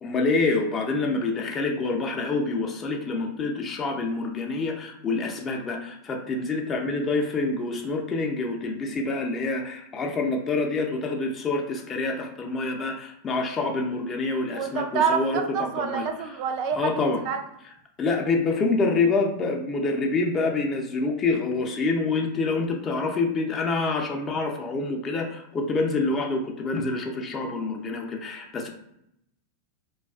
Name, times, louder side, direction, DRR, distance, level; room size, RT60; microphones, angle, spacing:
voice 1, 0.0-16.1 16.7-17.2 18.0-28.7, left 3 dB, 30° left, 2 dB, 0.5 m, -27 dB
voice 2, 14.5-16.8 17.3-17.4, right 6 dB, 55° right, 5 dB, 0.3 m, -27 dB
2.4 x 2.3 x 2.3 m, 0.77 s
hypercardioid pair, 100°, 0 cm